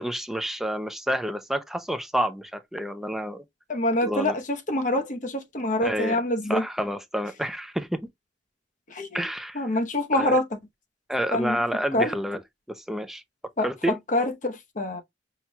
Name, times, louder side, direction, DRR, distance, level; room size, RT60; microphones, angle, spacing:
voice 1, 0.0-3.4 4.0-4.4 5.8-6.2 6.5-8.0 9.1-9.6 10.1-10.4 11.1-12.4 12.7-13.2 13.6-14.0, equal, ahead, 0.4 m, -29 dB
voice 2, 3.7-6.6 8.9-9.3 9.5-10.6 11.3-11.6 11.9-12.1 13.6-15.0, left 1 dB, 45° left, 0.8 m, -26 dB
5.7 x 2.2 x 2.9 m
head